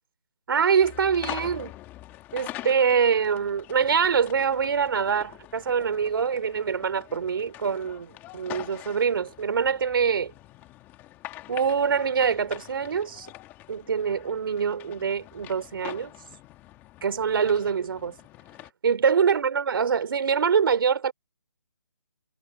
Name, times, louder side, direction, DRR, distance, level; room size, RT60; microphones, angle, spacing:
voice 1, 0.5-1.7 2.3-10.3 11.5-13.3 13.7-16.1 17.0-18.1 18.8-21.1, right 6 dB, 50° right, 2.9 m, -24 dB
sound 1, 0.8-18.7, left 16 dB, 10° left, 2.1 m, -44 dB
hypercardioid pair, 160°, 15 cm